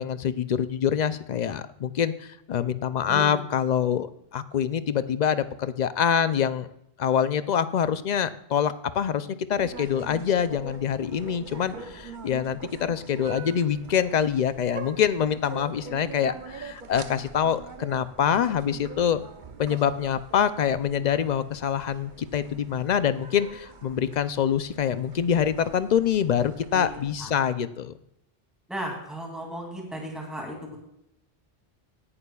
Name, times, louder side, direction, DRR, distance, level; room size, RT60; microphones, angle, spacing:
voice 1, 0.0-6.7 7.0-19.2 19.6-27.9, left 8 dB, 50° left, 13 dB, 0.6 m, -25 dB
voice 2, 3.1-3.4 26.7-26.9 27.2-27.3 28.7-30.8, right 1 dB, ahead, -1 dB, 2.5 m, -35 dB
sound 1, 9.5-27.1, right 4 dB, 55° right, 0.9 m, -43 dB
17.5 x 11.0 x 2.3 m, 0.79 s
omnidirectional pair, 1.0 m